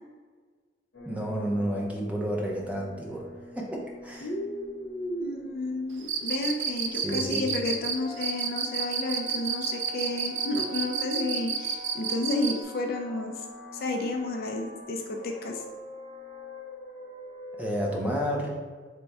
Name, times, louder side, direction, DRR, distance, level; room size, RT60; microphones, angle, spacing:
sound 1, 0.9-18.4, equal, 80° left, 0.8 m, -45 dB
voice 1, 1.1-3.3 3.5-4.3 6.9-7.5 17.6-18.7, equal, 10° right, -2 dB, 0.5 m, -31 dB
voice 2, 4.2-13.4 13.8-15.6, left 2 dB, 55° left, 2 dB, 0.4 m, -31 dB
Cricket, 6.0-12.6, right 7 dB, 85° right, 0.4 m, -30 dB
3.4 x 2.2 x 4.0 m, 1.5 s
head